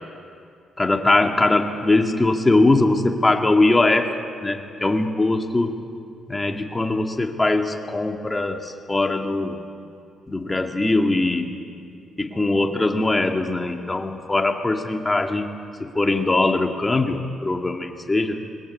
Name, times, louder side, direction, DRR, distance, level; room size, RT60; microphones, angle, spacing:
voice 1, 0.8-4.1 4.4-5.8 6.3-9.6 10.3-11.5 12.2-18.4, left 2 dB, 20° left, 4 dB, 2.2 m, -21 dB
22.0 x 20.5 x 8.6 m, 2.4 s
cardioid pair, 90°, 0 cm